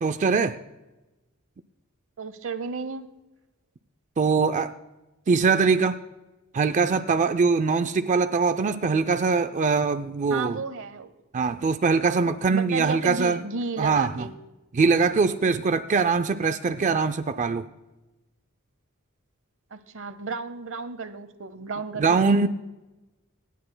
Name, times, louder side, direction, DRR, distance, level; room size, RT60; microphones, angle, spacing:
voice 1, 0.0-0.6 4.2-4.7 5.3-6.0 6.5-10.6 11.3-13.4 13.8-14.3 14.7-17.7 22.0-22.5, right 4 dB, 35° right, 0.4 m, -22 dB
voice 2, 2.2-3.1 10.3-11.1 12.5-14.3 19.7-22.5, right 4 dB, 65° right, 0.8 m, -33 dB
27.0 x 10.0 x 2.2 m
head